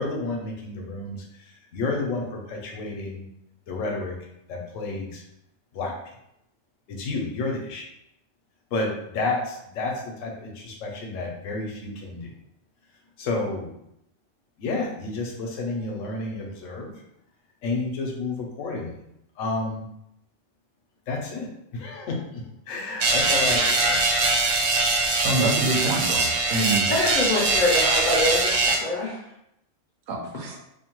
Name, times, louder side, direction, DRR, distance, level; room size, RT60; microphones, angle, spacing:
voice 1, 0.0-3.2 3.7-4.2 4.5-5.2 5.7-5.9 6.9-7.8 8.7-12.3 13.2-13.7 14.6-16.9 17.6-19.0 19.4-19.8 21.1-21.5 21.7-24.0, left 3 dB, 85° left, 0 dB, 1.0 m, -30 dB
sound 1, 23.0-28.8, right 3 dB, 60° right, 0.6 m, -22 dB
voice 2, 25.2-26.9 30.1-30.6, right 2 dB, 80° right, 1 dB, 0.9 m, -26 dB
voice 3, 26.9-29.2, left 1 dB, 55° left, -5 dB, 0.5 m, -24 dB
2.6 x 2.1 x 2.9 m, 0.79 s
omnidirectional pair, 1.3 m